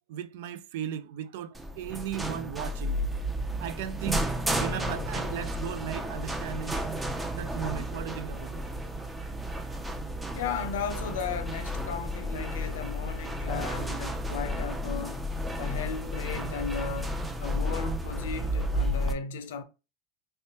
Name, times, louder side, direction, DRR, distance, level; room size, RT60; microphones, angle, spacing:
voice 1, 0.1-3.2 3.6-4.3 4.6-6.8 7.3-8.6, right 10 dB, 70° right, 0.4 m, -37 dB
sound 1, 1.5-19.1, equal, 10° right, 0.5 m, -32 dB
voice 2, 10.3-15.2 15.6-17.1 17.4-19.6, left 6 dB, 85° left, 0.5 m, -35 dB
3.3 x 3.0 x 2.9 m
supercardioid pair, 135°, 0 cm